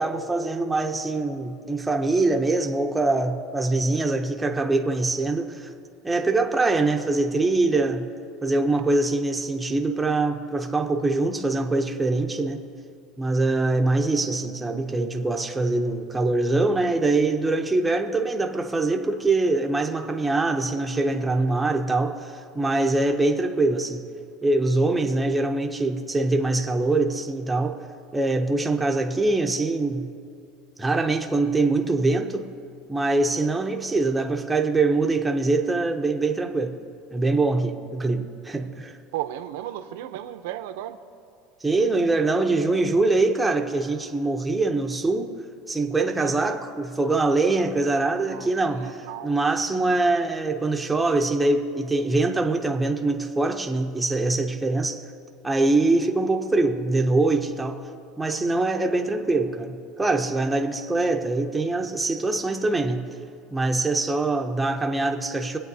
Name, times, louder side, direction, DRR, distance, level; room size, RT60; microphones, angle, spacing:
voice 1, 0.0-5.7 6.0-8.1 8.4-12.6 13.2-24.1 24.4-27.8 28.1-30.1 30.8-32.5 32.9-36.8 37.1-39.0 41.6-45.4 45.7-55.0 55.4-57.8 58.2-63.1 63.5-65.6, right 2 dB, 5° right, 0.6 m, -23 dB
voice 2, 39.1-41.0 46.2-46.6 48.3-49.3, right 12 dB, 85° right, 0.6 m, -35 dB
22.5 x 8.6 x 2.7 m
cardioid pair, 165°, 0 cm